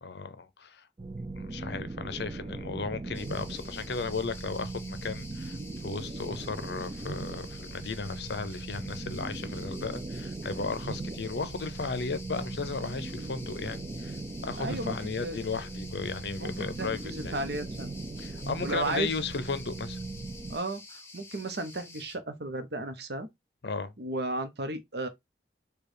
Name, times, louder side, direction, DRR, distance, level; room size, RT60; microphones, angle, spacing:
voice 1, 0.0-0.9 1.4-14.2 14.4-17.3 18.2-20.0 23.6-23.9, left 4 dB, 65° left, 0.6 m, -35 dB
sound 1, 1.0-20.6, right 3 dB, 25° right, 0.3 m, -39 dB
sound 2, 3.1-22.2, left 3 dB, 15° left, 0.8 m, -49 dB
voice 2, 14.6-14.9 15.2-15.4 16.4-17.9 18.6-19.2 20.5-23.3 24.0-25.1, right 2 dB, 60° right, 0.9 m, -34 dB
4.6 x 2.3 x 4.9 m
head